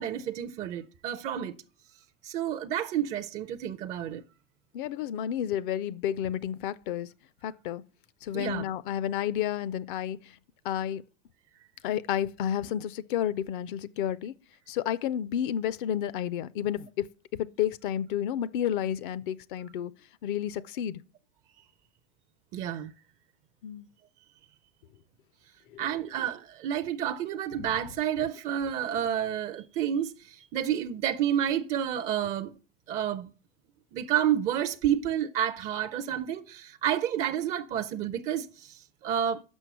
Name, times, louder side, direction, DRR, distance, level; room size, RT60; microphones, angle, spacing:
voice 1, 0.0-1.5 2.2-4.2 8.3-8.6 22.5-22.9 25.8-32.5 32.9-33.3 33.9-39.4, right 10 dB, 20° right, 0.4 m, -30 dB
voice 2, 4.7-7.1 7.4-7.8 8.2-10.4 10.6-11.0 11.8-14.3 14.7-19.9 20.2-21.0 23.6-23.9 25.7-25.8 27.6-27.7, left 10 dB, 45° left, 0.5 m, -31 dB
6.2 x 5.7 x 6.8 m
hypercardioid pair, 105°, 37 cm